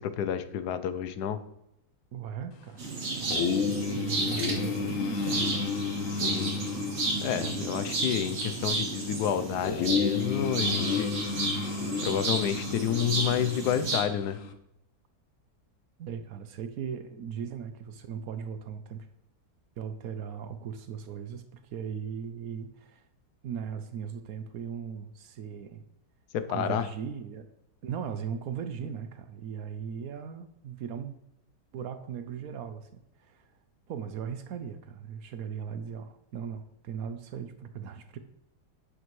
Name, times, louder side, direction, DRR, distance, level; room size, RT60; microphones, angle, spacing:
voice 1, 0.0-1.4 6.1-6.5 7.2-11.5 12.0-14.4 26.3-26.9, left 9 dB, 80° left, 11 dB, 1.2 m, -30 dB
voice 2, 2.1-5.7 7.4-7.6 16.0-19.1 19.8-23.0 23.4-25.8 26.5-27.5 27.8-31.1 31.7-33.4 33.9-38.2, right 7 dB, 70° right, 9 dB, 1.0 m, -38 dB
sound 1, 2.8-14.0, right 3 dB, 45° right, 1.4 m, -33 dB
sound 2, 3.3-14.5, left 6 dB, 65° left, 0.9 m, -32 dB
8.1 x 6.3 x 3.1 m, 0.83 s
omnidirectional pair, 1.7 m